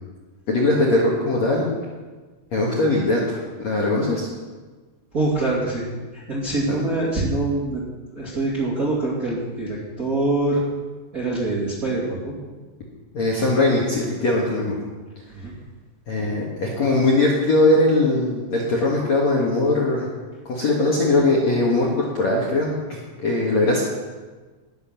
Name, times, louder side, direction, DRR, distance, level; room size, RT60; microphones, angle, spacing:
voice 1, 0.5-1.7 2.5-4.3 13.1-14.8 16.1-20.1 20.5-23.8, left 2 dB, 55° left, -4 dB, 2.2 m, -20 dB
voice 2, 5.1-5.8 6.1-7.8 8.1-10.6 11.1-12.3 15.3-15.5, right 2 dB, 30° right, -6 dB, 1.9 m, -24 dB
18.5 x 7.1 x 5.8 m, 1.3 s
omnidirectional pair, 5.1 m